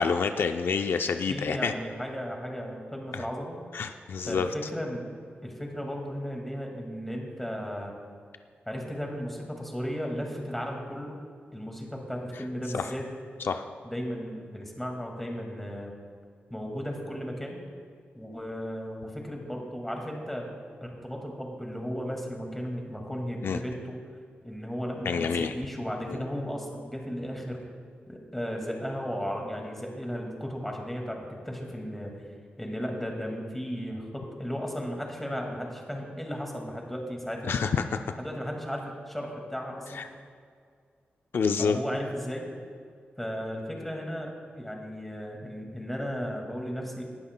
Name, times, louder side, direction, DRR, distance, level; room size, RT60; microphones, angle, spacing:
voice 1, 0.0-1.7 3.1-3.2 3.7-4.5 12.7-12.9 13.4-13.6 23.4-23.6 25.1-25.5 26.1-26.2 37.4-38.0 39.9-40.1 41.3-41.8, left 5 dB, 70° left, 7 dB, 0.4 m, -27 dB
voice 2, 1.3-3.6 4.3-5.0 5.4-7.9 8.7-11.2 11.5-13.1 13.8-15.9 16.5-17.6 18.1-20.5 20.8-24.0 24.4-27.6 28.1-32.1 32.6-37.6 38.2-40.1 41.6-42.5 43.2-47.0, equal, 5° left, 0 dB, 2.0 m, -35 dB
18.5 x 11.0 x 2.2 m, 2.1 s
wide cardioid pair, 95°, 4 cm